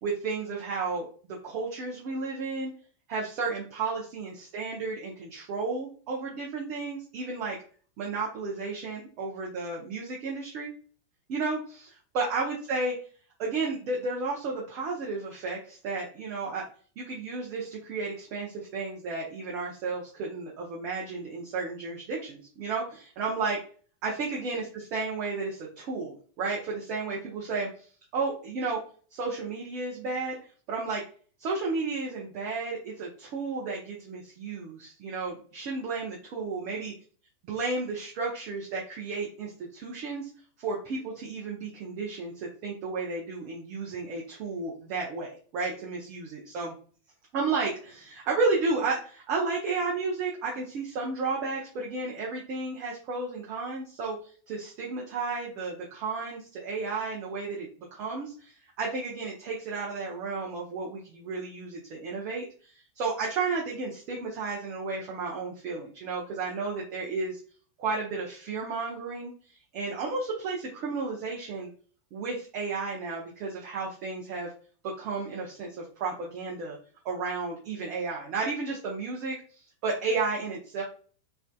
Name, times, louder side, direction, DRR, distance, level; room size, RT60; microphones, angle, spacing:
voice 1, 0.0-2.7 3.1-7.6 8.0-10.7 11.3-13.0 13.4-16.7 17.0-23.6 24.0-27.9 28.1-28.8 29.1-30.4 30.7-31.0 31.4-36.9 37.4-40.3 40.6-46.7 47.3-67.4 67.8-69.3 69.7-71.7 72.1-74.5 74.8-76.8 77.0-79.4 79.8-80.8, right 4 dB, 40° right, -2 dB, 0.7 m, -33 dB
3.3 x 2.6 x 2.2 m, 0.42 s
figure-of-eight pair, 90°, 0 cm